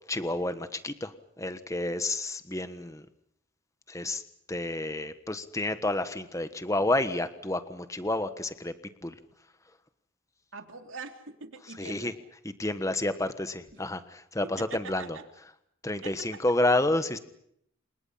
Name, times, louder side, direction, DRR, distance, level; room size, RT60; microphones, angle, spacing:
voice 1, 0.1-3.0 3.9-4.2 4.5-8.7 9.0-9.1 11.8-12.1 12.6-15.2 15.8-17.2, left 2 dB, 15° left, 11 dB, 1.3 m, -30 dB
voice 2, 10.5-12.1 13.7-13.8 14.6-15.2 16.0-16.4, right 4 dB, 75° right, 6 dB, 3.3 m, -43 dB
29.0 x 26.5 x 5.7 m, 0.70 s
head